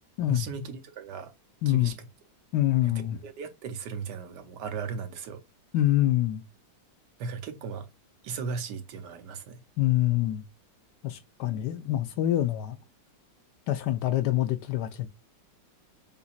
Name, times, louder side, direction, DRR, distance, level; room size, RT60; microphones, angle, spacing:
voice 1, 0.3-1.3 1.7-2.1 2.8-2.9 3.2-5.4 7.2-7.9 8.2-9.6, right 5 dB, 70° right, 1.3 m, -36 dB
voice 2, 1.6-1.9 2.5-3.2 5.7-6.4 9.8-10.4 11.0-12.8 13.7-15.1, left 14 dB, 75° left, 1.1 m, -25 dB
6.9 x 2.7 x 2.4 m
omnidirectional pair, 2.0 m